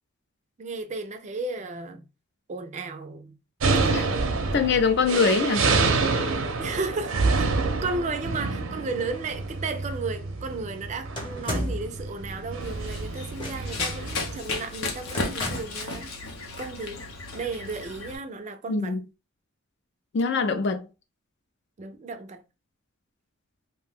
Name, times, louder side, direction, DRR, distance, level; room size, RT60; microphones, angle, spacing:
voice 1, 0.6-2.0 2.5-3.4 3.7-4.2 6.6-16.1 16.6-17.0 17.3-18.9 21.8-22.4, right 3 dB, 35° right, 0.4 m, -34 dB
sound 1, 3.6-14.4, right 3 dB, 80° right, 0.6 m, -27 dB
voice 2, 4.5-5.7 18.7-19.0 20.1-20.8, left 5 dB, 55° left, 0.4 m, -23 dB
sound 2, 11.2-12.0 13.3-13.9 15.1-15.8, left 1 dB, 25° left, 0.9 m, -33 dB
Run, 12.6-18.1, left 3 dB, 90° left, 0.7 m, -34 dB
2.6 x 2.1 x 3.4 m
head